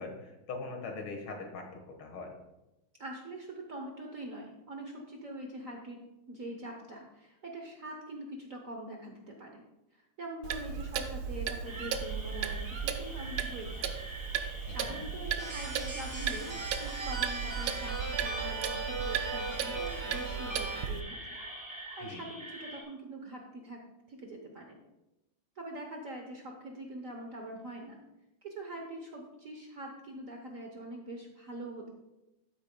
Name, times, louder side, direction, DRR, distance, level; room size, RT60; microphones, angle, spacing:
voice 1, 0.0-2.4 14.7-14.9 22.0-22.2, left 3 dB, 75° left, 3 dB, 2.3 m, -42 dB
voice 2, 3.0-6.0 6.3-9.6 10.2-14.0 14.7-21.4 22.0-23.8 24.1-24.8 25.6-28.0 28.4-31.9, right 1 dB, 55° right, 2 dB, 1.0 m, -43 dB
Clock, 10.4-21.0, right 7 dB, 75° right, 1.5 m, -36 dB
sound 1, 11.6-22.8, right 1 dB, 5° right, 1.6 m, -46 dB
sound 2, 15.4-20.9, right 3 dB, 20° right, 0.7 m, -38 dB
12.5 x 8.7 x 2.3 m, 0.96 s
omnidirectional pair, 2.3 m